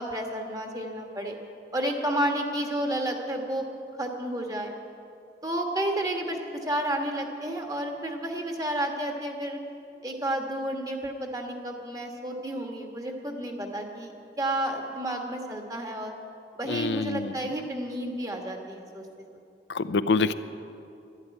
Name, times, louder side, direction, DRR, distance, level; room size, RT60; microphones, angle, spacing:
voice 1, 0.0-1.4 1.7-3.7 4.0-4.7 5.4-9.6 10.0-14.1 14.4-16.1 16.5-19.0, right 1 dB, 20° right, 2 dB, 1.4 m, -31 dB
voice 2, 16.7-17.3 19.7-20.3, left 4 dB, 80° left, 12 dB, 0.5 m, -26 dB
12.0 x 11.5 x 9.4 m, 2.6 s
head